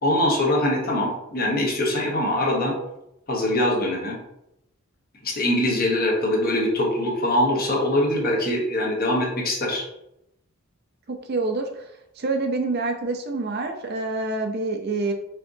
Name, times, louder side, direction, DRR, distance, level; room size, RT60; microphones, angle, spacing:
voice 1, 0.0-2.7 3.3-4.2 5.2-9.8, left 1 dB, 45° left, -1 dB, 1.1 m, -23 dB
voice 2, 11.1-11.8 12.2-15.1, right 3 dB, 50° right, 4 dB, 0.5 m, -27 dB
4.5 x 3.6 x 2.7 m, 0.82 s
head